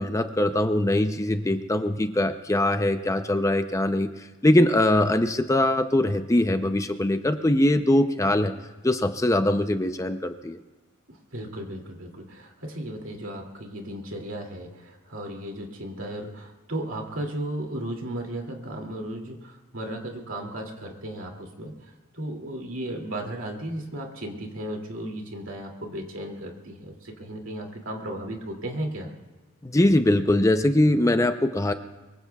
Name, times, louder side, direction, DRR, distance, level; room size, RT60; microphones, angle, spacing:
voice 1, 0.0-4.1 4.4-8.5 8.8-10.6 29.6-31.7, left 1 dB, 15° left, 8 dB, 0.5 m, -22 dB
voice 2, 11.1-29.1, right 1 dB, 70° right, 1 dB, 2.5 m, -35 dB
24.0 x 22.5 x 2.3 m, 1.2 s
head